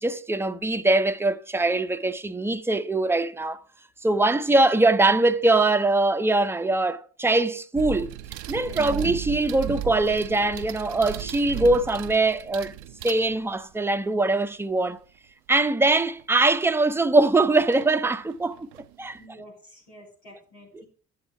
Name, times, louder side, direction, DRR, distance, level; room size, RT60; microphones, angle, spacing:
voice 1, 0.0-3.6 4.0-8.2 8.5-12.7 13.0-15.0 15.5-18.7 19.0-19.2, right 2 dB, 5° right, 0.7 m, -22 dB
sound 1, 7.7-13.7 16.2-16.3 17.7-17.9 18.3-19.2, right 12 dB, 70° right, 0.6 m, -35 dB
voice 2, 8.6-8.9 19.2-20.8, equal, 90° left, 4.1 m, -49 dB
11.0 x 8.0 x 4.6 m
figure-of-eight pair, 50°, 36 cm